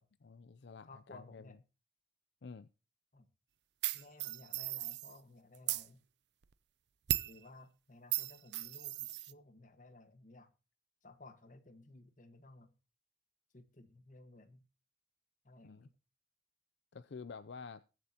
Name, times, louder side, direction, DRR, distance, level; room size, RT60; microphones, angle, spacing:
voice 1, 0.2-1.5 2.4-2.7 15.6-15.9 16.9-17.8, left 5 dB, 70° left, 0.5 m, -49 dB
voice 2, 0.8-1.6 3.1-3.3 3.9-6.0 7.2-10.5 11.0-12.7 13.5-14.6 15.4-16.0, left 2 dB, 45° left, 1.5 m, -57 dB
sound 1, 3.8-5.2 5.5-5.9 7.1-7.4 8.1-9.3, right 15 dB, 65° right, 0.5 m, -36 dB
21.0 x 7.6 x 2.9 m
head